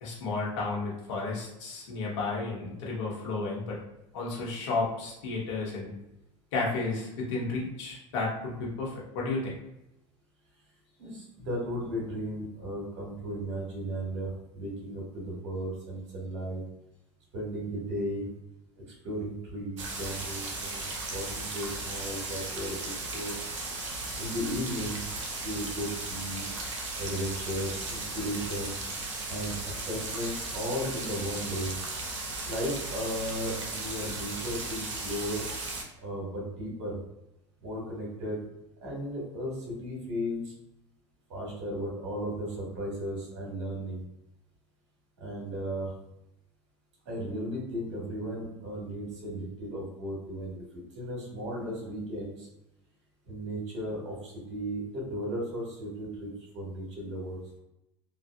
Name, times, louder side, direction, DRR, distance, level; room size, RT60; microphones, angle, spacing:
voice 1, 0.0-3.8 4.1-5.9 6.5-9.5, left 3 dB, 75° left, -4 dB, 1.2 m, -32 dB
voice 2, 11.0-16.6 17.3-18.3 19.0-23.3 24.2-25.0 25.4-26.5 27.0-28.7 29.3-29.5 29.8-31.7 32.4-35.5 36.0-37.0 37.6-38.4 38.8-40.5 41.3-44.0 45.2-45.9 47.0-50.6 50.9-52.5 53.2-57.4, equal, 75° right, -4 dB, 1.5 m, -35 dB
sound 1, 19.8-35.8, right 2 dB, 90° right, 0.7 m, -36 dB
3.3 x 2.5 x 2.3 m, 0.88 s
hypercardioid pair, 85°, 15 cm